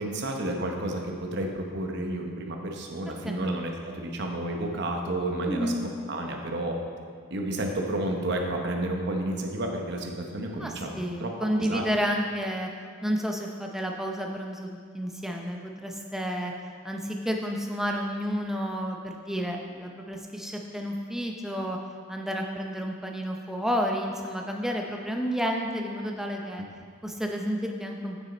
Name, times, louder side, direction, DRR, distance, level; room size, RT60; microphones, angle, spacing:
voice 1, 0.0-5.7 6.1-6.8 7.3-10.9 11.2-11.3 11.6-11.8, right 1 dB, 55° right, 2 dB, 0.9 m, -31 dB
voice 2, 3.2-3.6 5.5-5.8 10.6-12.7 13.0-16.5 16.8-21.8 22.1-26.6 27.0-28.2, equal, ahead, 1 dB, 0.6 m, -31 dB
8.3 x 6.4 x 4.2 m, 2.1 s
head